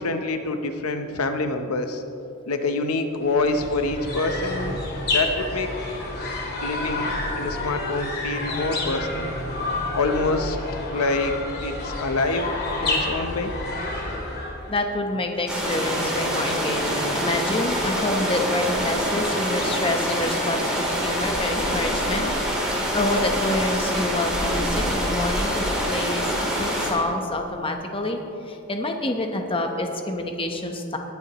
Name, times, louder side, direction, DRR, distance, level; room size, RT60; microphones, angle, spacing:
voice 1, 0.0-2.0 2.5-4.8 5.1-5.7 6.6-7.1 7.3-9.3 9.9-10.6 10.9-12.5 12.8-13.5, left 3 dB, 80° left, 7 dB, 0.8 m, -26 dB
sound 1, 3.2-14.7, left 2 dB, 50° left, 2.0 m, -29 dB
voice 2, 14.7-22.2 22.9-28.2 28.5-31.0, left 1 dB, 25° left, 4 dB, 0.9 m, -27 dB
sound 2, 15.5-26.9, equal, 5° right, 3.1 m, -25 dB
19.5 x 10.5 x 3.0 m, 2.8 s
head